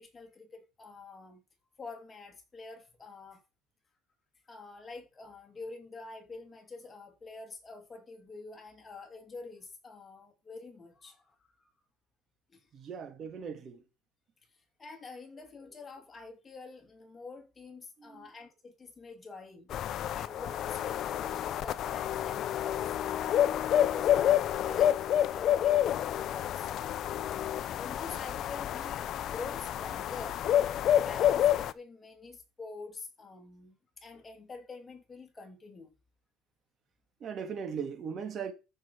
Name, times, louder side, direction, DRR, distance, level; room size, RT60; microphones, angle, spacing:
voice 1, 0.0-1.4 1.8-3.4 4.5-11.7 12.5-12.7 14.8-19.7 20.1-23.0 23.4-26.7 27.3-30.4 30.9-35.9, left 3 dB, 20° left, 3.1 m, -47 dB
voice 2, 12.7-13.8 18.0-18.3 37.2-38.5, right 6 dB, 35° right, 2.6 m, -39 dB
sound 1, 19.7-31.7, left 11 dB, 45° left, 0.8 m, -29 dB
14.0 x 6.5 x 5.0 m
supercardioid pair, 120°, 0 cm